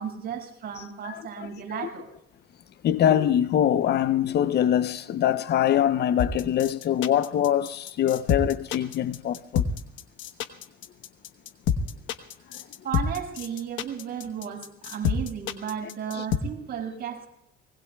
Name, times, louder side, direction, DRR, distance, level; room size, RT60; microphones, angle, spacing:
voice 1, 0.0-2.1 12.8-17.3, right 8 dB, 50° right, 5.9 m, -34 dB
voice 2, 1.0-1.5 1.8-1.9 2.8-9.7 15.8-16.2, left 10 dB, 55° left, 0.7 m, -24 dB
sound 1, 6.2-16.4, left 8 dB, 70° left, 1.1 m, -27 dB
25.5 x 20.0 x 2.3 m
cardioid pair, 100°, 21 cm